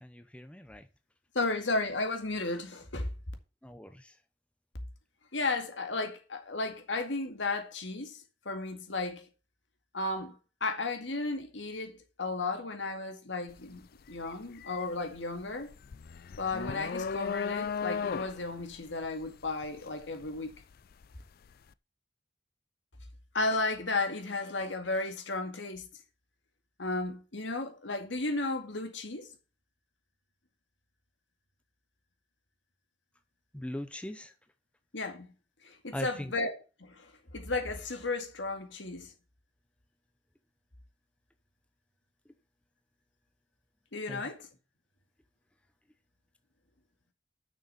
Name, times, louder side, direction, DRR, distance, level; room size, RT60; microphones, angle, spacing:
voice 1, 0.0-0.9 3.6-4.2 33.5-34.3 35.9-36.3 44.1-44.2, left 1 dB, 5° left, 0.7 m, -40 dB
voice 2, 1.3-3.1 5.3-9.3 9.9-15.7 16.4-20.5 23.3-25.9 26.8-29.3 34.9-35.3 35.6-37.1 37.3-39.1 43.9-44.4, left 3 dB, 80° left, 2.0 m, -34 dB
sound 1, 13.5-13.7 14.1-21.1, left 6 dB, 55° left, 0.4 m, -36 dB
6.6 x 6.5 x 6.7 m
head